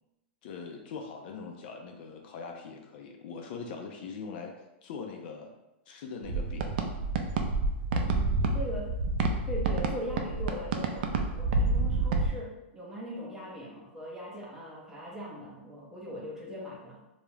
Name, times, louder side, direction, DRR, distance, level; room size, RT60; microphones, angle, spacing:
voice 1, 0.4-4.5 4.8-5.5 5.9-6.9, left 5 dB, 55° left, 3 dB, 0.4 m, -41 dB
sound 1, 6.2-12.3, right 3 dB, 60° right, 0.3 m, -28 dB
voice 2, 8.0-9.0 9.4-17.0, left 1 dB, 5° right, -4 dB, 0.5 m, -40 dB
2.3 x 2.0 x 3.1 m, 0.95 s
hypercardioid pair, 145°, 6 cm